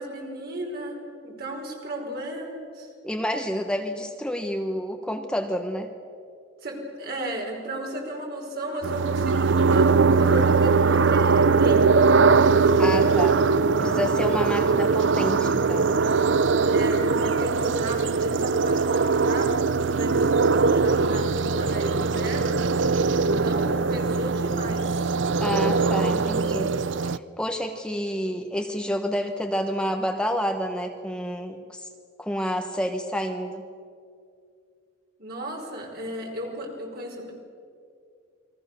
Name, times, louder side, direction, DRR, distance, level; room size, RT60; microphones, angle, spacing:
voice 1, 0.0-2.9 6.6-12.5 16.7-25.1 35.2-37.3, right 1 dB, 55° right, 0 dB, 5.3 m, -34 dB
voice 2, 3.0-5.9 12.8-13.4 13.8-15.9 25.4-26.8 27.0-31.9 32.2-33.6, equal, 5° left, 5 dB, 1.1 m, -29 dB
sound 1, 8.8-27.2, right 4 dB, 75° right, 0.6 m, -21 dB
28.5 x 22.0 x 6.9 m, 2.4 s
head